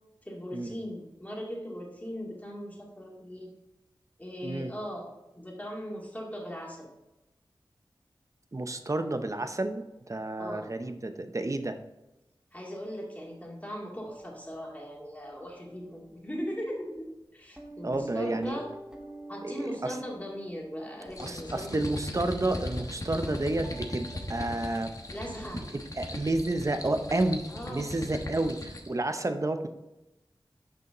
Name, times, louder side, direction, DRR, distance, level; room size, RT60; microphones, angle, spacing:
voice 1, 0.2-3.5 4.2-6.9 10.4-10.7 12.5-18.7 19.3-21.8 25.1-25.6 27.5-27.9, equal, 20° left, -2 dB, 2.3 m, -39 dB
voice 2, 4.4-4.7 8.5-11.8 17.8-18.6 19.4-20.0 21.2-24.9 25.5-29.7, right 2 dB, 40° right, 9 dB, 0.7 m, -30 dB
sound 1, 14.1-16.1 17.0-17.1 17.5-21.8 22.5-22.7 23.2-26.1 26.4-26.5 27.1-27.2, right 2 dB, 10° right, 1.4 m, -49 dB
sound 2, 21.1-28.9, left 1 dB, 40° left, 1.1 m, -39 dB
6.2 x 5.6 x 3.8 m, 0.96 s
cardioid pair, 40°, 9 cm